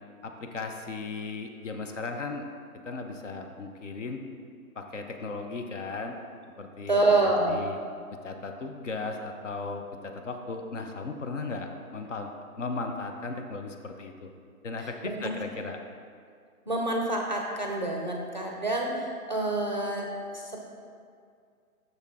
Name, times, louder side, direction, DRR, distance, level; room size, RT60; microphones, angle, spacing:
voice 1, 0.2-2.5 2.8-4.2 4.8-6.2 6.6-7.0 7.5-7.8 8.2-12.3 12.6-14.3 14.6-15.8, left 3 dB, 55° left, 5 dB, 0.7 m, -36 dB
voice 2, 6.9-7.6 14.8-15.4 16.7-20.1 20.3-20.6, right 2 dB, 35° right, 0 dB, 0.5 m, -27 dB
6.6 x 6.3 x 3.6 m, 2.2 s
hypercardioid pair, 165°, 45 cm